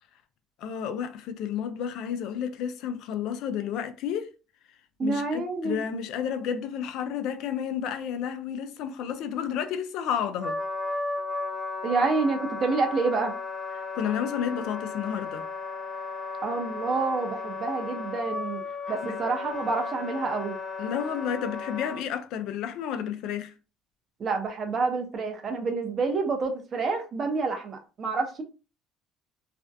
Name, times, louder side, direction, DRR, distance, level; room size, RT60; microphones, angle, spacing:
voice 1, 0.6-4.4 5.0-10.6 13.9-15.5 19.0-19.2 20.8-23.5, left 8 dB, 70° left, 0.4 m, -31 dB
voice 2, 5.0-5.8 11.8-13.3 16.4-18.6 18.9-20.6 24.2-28.4, right 4 dB, 40° right, 0.6 m, -28 dB
Wind instrument woodwind instrument, 10.4-22.0, left 3 dB, 15° left, 0.9 m, -34 dB
2.5 x 2.1 x 2.5 m
cardioid pair, 105°, 0 cm